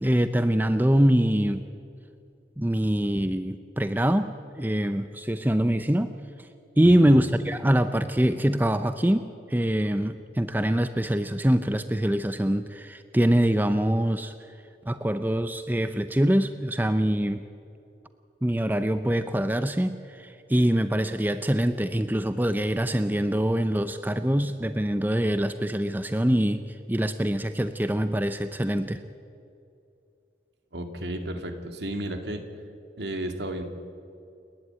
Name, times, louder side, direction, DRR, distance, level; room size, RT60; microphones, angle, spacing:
voice 1, 0.0-1.6 2.6-6.5 6.8-14.3 14.9-17.4 18.4-29.0, right 1 dB, 10° right, 10 dB, 0.6 m, -24 dB
voice 2, 30.7-32.4 33.0-33.6, right 1 dB, 70° right, 5 dB, 2.3 m, -33 dB
29.0 x 11.0 x 8.9 m, 2.6 s
head